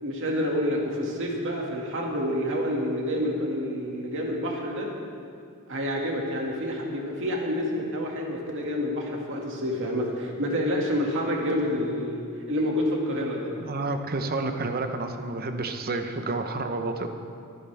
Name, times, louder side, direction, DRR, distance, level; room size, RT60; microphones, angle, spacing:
voice 1, 0.0-4.9 5.7-13.5, equal, 60° right, -1 dB, 2.2 m, -28 dB
voice 2, 13.6-17.1, right 3 dB, 45° right, 6 dB, 0.9 m, -30 dB
23.5 x 9.8 x 3.5 m, 2.4 s
head